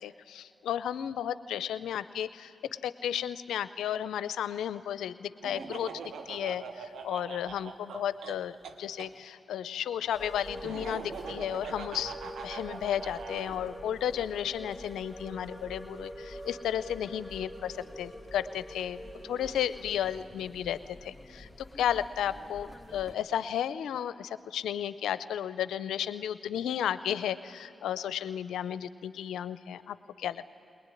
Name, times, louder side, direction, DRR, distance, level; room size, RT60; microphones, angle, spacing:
voice 1, 0.0-2.5 2.8-5.9 6.3-12.1 12.4-21.5 21.8-30.5, left 10 dB, 85° left, 15 dB, 0.5 m, -33 dB
Laughter, 5.4-9.1 10.6-13.6, right 5 dB, 80° right, 1.2 m, -42 dB
sound 1, 10.1-23.1, equal, ahead, 2.3 m, -45 dB
21.0 x 20.0 x 9.9 m, 2.5 s
supercardioid pair, 45°, 0 cm